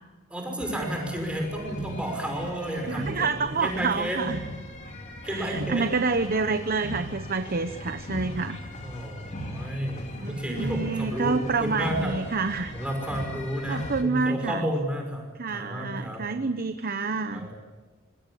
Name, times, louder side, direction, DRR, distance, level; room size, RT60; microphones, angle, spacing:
voice 1, 0.3-4.2 5.2-5.9 8.8-12.2 12.7-15.3 15.5-16.3 17.3-17.5, equal, 5° right, 2 dB, 5.8 m, -31 dB
sound 1, 0.6-14.0, equal, 35° left, 3.3 m, -38 dB
voice 2, 2.9-4.4 5.2-8.6 10.2-12.7 13.7-14.6 15.4-17.5, right 4 dB, 45° right, 9 dB, 1.0 m, -28 dB
26.0 x 22.0 x 8.6 m, 1.3 s
head